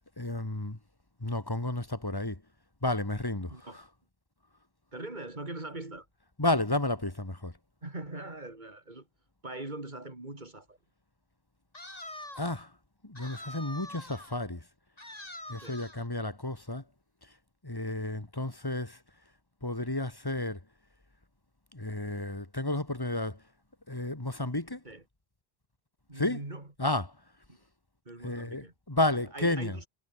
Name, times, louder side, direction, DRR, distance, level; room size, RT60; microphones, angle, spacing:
voice 1, 0.2-0.8 1.2-2.4 2.8-3.8 6.4-7.5 12.4-12.7 13.0-14.6 15.5-16.8 17.6-19.0 19.6-20.6 21.7-23.4 23.9-24.8 26.2-26.4 26.8-27.1 28.2-29.8, left 2 dB, 20° left, 2.3 m, -32 dB
voice 2, 4.9-6.1 7.8-9.1 9.4-10.8 15.6-15.8 24.8-25.0 26.1-26.7 27.5-27.6 28.1-29.0 29.3-29.9, right 2 dB, 45° right, 3.6 m, -41 dB
sound 1, 11.7-12.6 13.2-14.4 15.0-16.1, left 1 dB, 35° left, 4.0 m, -45 dB
omnidirectional pair, 1.1 m